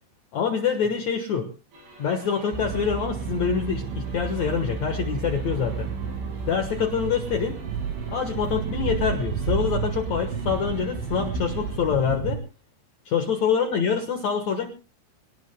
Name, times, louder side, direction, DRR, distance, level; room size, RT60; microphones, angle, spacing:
voice 1, 0.3-1.5 2.0-5.9 6.5-7.6 8.1-12.4 13.0-14.7, left 6 dB, 80° left, 5 dB, 1.6 m, -25 dB
sound 1, 1.7-11.8, right 1 dB, 55° right, 7.9 m, -48 dB
sound 2, 2.5-12.4, right 6 dB, 85° right, 4.6 m, -31 dB
25.5 x 18.5 x 2.2 m, 0.32 s
omnidirectional pair, 5.4 m